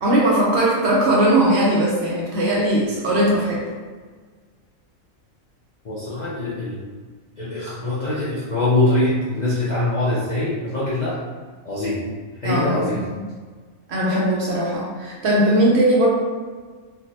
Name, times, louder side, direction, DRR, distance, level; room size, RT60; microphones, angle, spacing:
voice 1, 0.0-3.7 12.4-13.2 13.9-16.1, right 1 dB, 65° right, -4 dB, 0.8 m, -19 dB
voice 2, 5.8-6.8 7.4-11.2 11.6-12.0 12.4-13.0, left 2 dB, 50° left, -9 dB, 0.5 m, -23 dB
3.4 x 2.2 x 2.7 m, 1.5 s
omnidirectional pair, 1.4 m